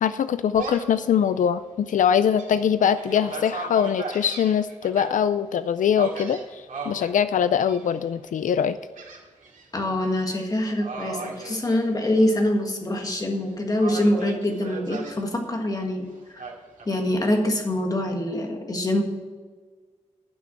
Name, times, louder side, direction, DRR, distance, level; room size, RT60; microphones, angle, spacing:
voice 1, 0.0-8.8, left 8 dB, 90° left, 13 dB, 0.4 m, -22 dB
Gull seagull, 0.5-1.0 1.5-1.6 2.1-5.1 6.0-7.1 7.6-8.1 9.0-9.7 10.0-10.2 10.8-12.3 12.7-13.4 13.8-15.2 16.4-17.4, right 4 dB, 90° right, 2.2 m, -37 dB
voice 2, 9.7-16.1 16.3-16.4 16.8-19.0, left 1 dB, 30° left, 2 dB, 1.6 m, -24 dB
11.0 x 6.0 x 7.6 m, 1.4 s
wide cardioid pair, 165°, 13 cm